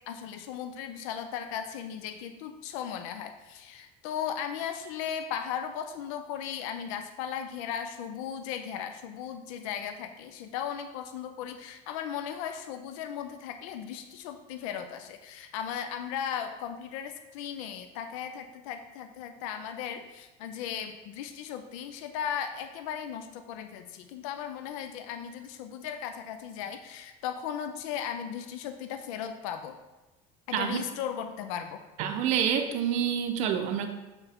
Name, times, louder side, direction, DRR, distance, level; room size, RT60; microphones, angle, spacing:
voice 1, 0.1-29.8 30.5-31.8, left 8 dB, 80° left, 8 dB, 0.5 m, -37 dB
voice 2, 32.0-33.9, right 8 dB, 45° right, 6 dB, 0.6 m, -27 dB
6.7 x 4.5 x 3.5 m, 1.1 s
cardioid pair, 170°, 17 cm